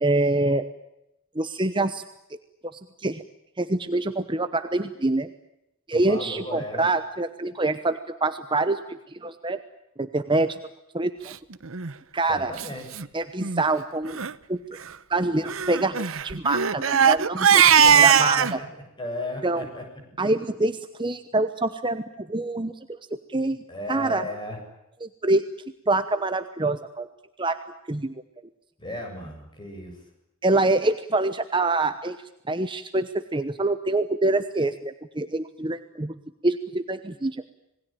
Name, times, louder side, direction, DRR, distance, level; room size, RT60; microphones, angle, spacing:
voice 1, 0.0-0.6 1.3-2.0 3.0-3.2 3.6-5.3 5.9-8.8 9.2-9.6 10.0-10.6 10.9-11.3 12.1-12.5 13.1-14.2 14.5-14.6 15.1-17.6 17.9-18.6 19.4-19.7 20.2-22.7 23.3-23.6 23.9-24.3 25.0-25.4 25.9-27.1 27.4-27.6 27.9-28.1 30.4-32.2 32.5-36.1 36.4-37.4, right 2 dB, 20° right, 10 dB, 1.0 m, -25 dB
voice 2, 6.1-6.9 12.3-13.0 17.7-18.7 19.0-19.8 23.7-24.6 28.8-30.0, left 1 dB, 20° left, 3 dB, 7.8 m, -35 dB
Crying sobbing, 11.7-11.9 12.6-12.7 12.9-13.1 13.4-13.6 14.1-14.3 15.5-18.5, right 7 dB, 70° right, 0.9 m, -19 dB
27.0 x 20.0 x 9.1 m, 0.86 s
head